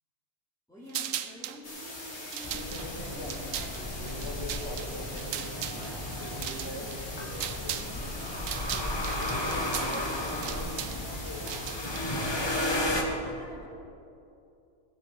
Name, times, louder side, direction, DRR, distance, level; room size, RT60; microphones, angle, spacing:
voice 1, 0.7-8.4 9.1-13.7, equal, ahead, -12 dB, 3.3 m, -49 dB
sound 1, 0.9-1.6 2.2-7.9 8.2-12.0, right 10 dB, 70° right, 1.0 m, -38 dB
sound 2, 1.6-12.8, left 1 dB, 50° left, 2.6 m, -42 dB
sound 3, 2.4-13.0, left 1 dB, 20° left, 1.3 m, -34 dB
18.0 x 7.5 x 6.5 m, 2.7 s
omnidirectional pair, 1.5 m